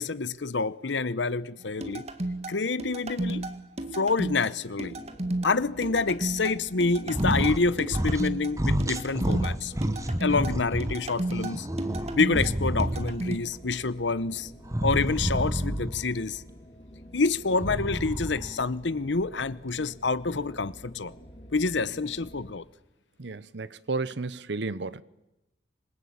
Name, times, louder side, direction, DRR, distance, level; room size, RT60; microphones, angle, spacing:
voice 1, 0.0-2.1 2.5-3.5 3.9-4.9 5.4-9.7 10.2-11.7 12.1-14.5 14.8-16.4 17.1-21.1 21.5-22.6, left 4 dB, 80° left, 0.9 m, -27 dB
sound 1, 1.8-13.4, right 1 dB, 35° right, 1.8 m, -33 dB
sound 2, 4.9-22.5, equal, 40° left, 3.9 m, -48 dB
sound 3, 7.1-7.6 7.9-8.3 8.6-10.9 11.4-13.3 14.7-16.1 17.5-18.6, right 1 dB, 15° right, 1.1 m, -29 dB
voice 2, 23.2-25.0, right 3 dB, 70° right, 0.9 m, -32 dB
26.5 x 21.5 x 8.7 m
head